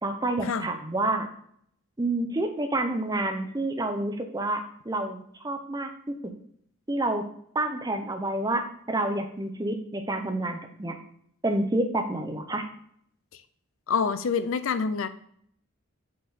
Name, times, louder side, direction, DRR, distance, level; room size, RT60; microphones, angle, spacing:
voice 1, 0.0-1.3 2.0-5.9 6.9-7.2 7.5-10.9 11.4-12.6, right 2 dB, 15° right, 5 dB, 0.7 m, -28 dB
voice 2, 13.9-15.1, left 5 dB, 65° left, 13 dB, 0.5 m, -26 dB
6.2 x 5.4 x 4.0 m, 0.66 s
head